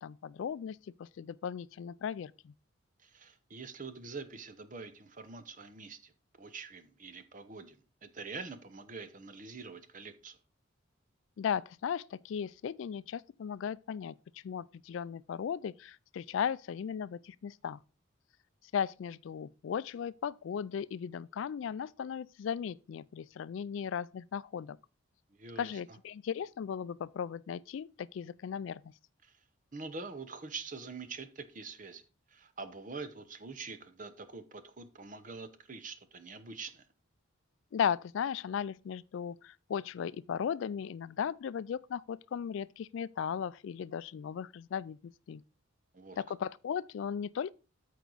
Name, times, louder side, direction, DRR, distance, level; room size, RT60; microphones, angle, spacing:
voice 1, 0.0-2.5 11.4-14.1 14.4-17.8 18.7-24.8 25.6-28.8 37.7-45.4 46.2-47.5, left 7 dB, 65° left, 0.3 m, -36 dB
voice 2, 3.0-6.1 6.4-10.4 25.3-26.0 29.2-29.4 29.7-32.0 32.3-36.9 45.9-46.2, right 4 dB, 40° right, 0.8 m, -45 dB
13.0 x 4.6 x 3.9 m
head